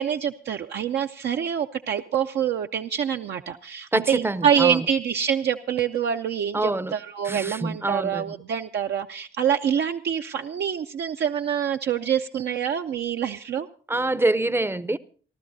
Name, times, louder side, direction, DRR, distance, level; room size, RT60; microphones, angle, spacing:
voice 1, 0.0-13.7, right 8 dB, 60° right, 0.6 m, -26 dB
voice 2, 3.9-4.8 6.5-6.9 7.2-8.2 13.9-15.0, right 2 dB, 10° right, 0.6 m, -25 dB
29.0 x 12.0 x 2.7 m
cardioid pair, 90°, 20 cm